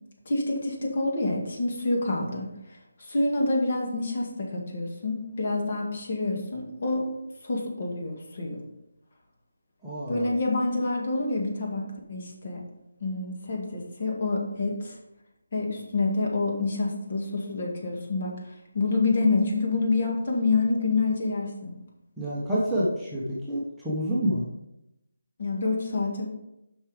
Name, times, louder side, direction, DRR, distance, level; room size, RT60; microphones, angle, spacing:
voice 1, 0.3-7.1 7.4-8.6 10.1-11.8 12.1-12.6 13.0-15.0 15.5-18.3 18.7-21.7 25.4-26.3, left 3 dB, 40° left, 0 dB, 2.0 m, -27 dB
voice 2, 9.8-10.3 22.2-24.4, equal, 5° right, -10 dB, 1.0 m, -28 dB
7.2 x 5.9 x 5.0 m, 0.88 s
figure-of-eight pair, 170°, 0 cm